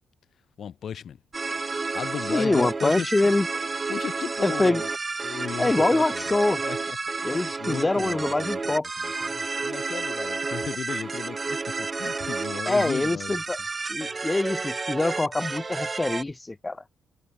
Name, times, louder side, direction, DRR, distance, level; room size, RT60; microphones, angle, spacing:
voice 1, 0.6-1.2 1.9-3.3 3.9-4.9 5.2-6.2 6.6-7.0 7.3-13.4 14.0-14.2, left 8 dB, 55° left, 5.3 m, -36 dB
sound 1, 1.3-16.2, right 4 dB, 25° right, 1.6 m, -31 dB
voice 2, 2.3-3.5 4.4-4.8 5.6-6.6 7.2-8.9 12.7-13.6 13.9-16.8, left 2 dB, 15° left, 1.5 m, -24 dB
cardioid pair, 90°, 0 cm